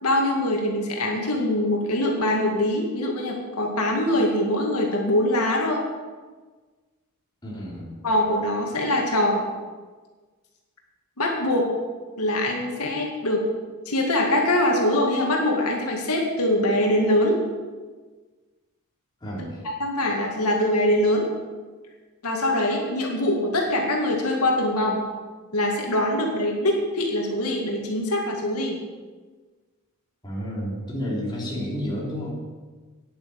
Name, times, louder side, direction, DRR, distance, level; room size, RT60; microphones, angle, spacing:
voice 1, 0.0-5.8 8.0-9.4 11.2-11.7 12.2-13.4 13.9-17.4 19.6-21.3 22.2-25.0 25.5-28.8, left 1 dB, 85° left, 0 dB, 2.1 m, -23 dB
voice 2, 7.4-7.9 19.2-19.6 30.2-32.3, equal, 20° left, -5 dB, 3.2 m, -31 dB
9.9 x 8.8 x 7.0 m, 1.4 s
head